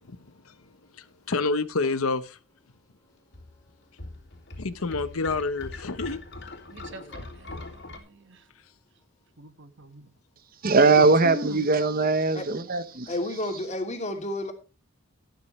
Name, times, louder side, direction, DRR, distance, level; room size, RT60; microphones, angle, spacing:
voice 1, 0.0-1.1 3.0-4.7 6.7-8.0, equal, 20° left, 3.3 m, -59 dB
voice 2, 1.3-2.4 4.6-6.2, left 3 dB, 85° left, 1.0 m, -27 dB
sound 1, 3.3-8.0, left 2 dB, 55° left, 3.1 m, -41 dB
voice 3, 6.7-7.6 7.9-8.4 9.4-10.1 11.0-11.7, equal, 60° right, 1.7 m, -40 dB
voice 4, 10.6-13.1, right 3 dB, 45° right, 1.0 m, -21 dB
voice 5, 13.1-14.5, left 1 dB, 35° left, 2.9 m, -31 dB
13.0 x 12.5 x 3.2 m
head